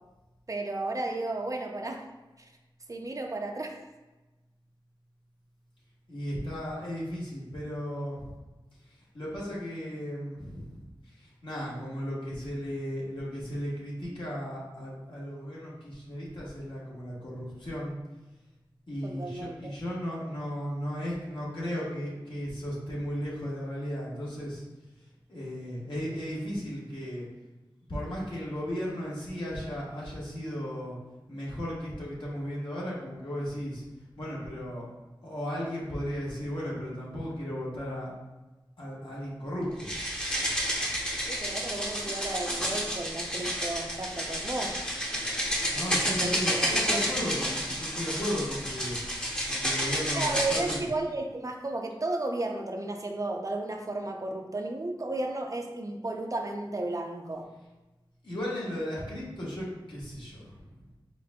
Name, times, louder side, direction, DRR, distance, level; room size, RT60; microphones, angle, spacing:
voice 1, 0.5-2.0 2.4-2.5 2.9-3.8 19.0-19.7 41.3-44.8 46.1-47.2 50.2-57.5, right 2 dB, 40° right, 3 dB, 0.5 m, -33 dB
voice 2, 6.1-8.3 9.1-10.8 11.2-18.0 18.9-24.6 25.3-27.3 27.9-31.0 31.3-33.8 34.2-34.9 35.2-38.1 38.8-39.9 45.7-49.0 49.5-50.9 58.2-60.6, equal, 70° left, -6 dB, 1.4 m, -35 dB
sound 1, 39.8-50.8, equal, 10° left, 0.7 m, -30 dB
5.0 x 3.5 x 2.3 m, 1.1 s
wide cardioid pair, 60°, 9 cm